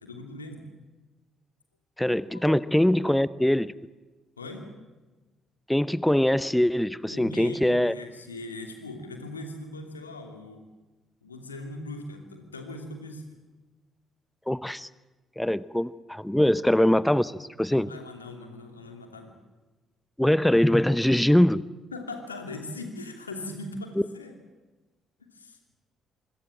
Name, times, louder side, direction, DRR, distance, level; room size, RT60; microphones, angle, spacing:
voice 1, 0.0-0.6 2.3-2.4 3.0-3.2 4.4-4.7 7.1-10.6 11.2-13.3 17.7-19.3 21.9-24.4 25.2-25.6, left 2 dB, 85° left, 4 dB, 2.8 m, -40 dB
voice 2, 2.0-3.7 5.7-7.9 14.5-14.9 15.4-17.9 20.2-21.6, left 1 dB, 5° left, 18 dB, 0.8 m, -22 dB
25.5 x 25.5 x 7.5 m, 1.2 s
figure-of-eight pair, 45°, 0 cm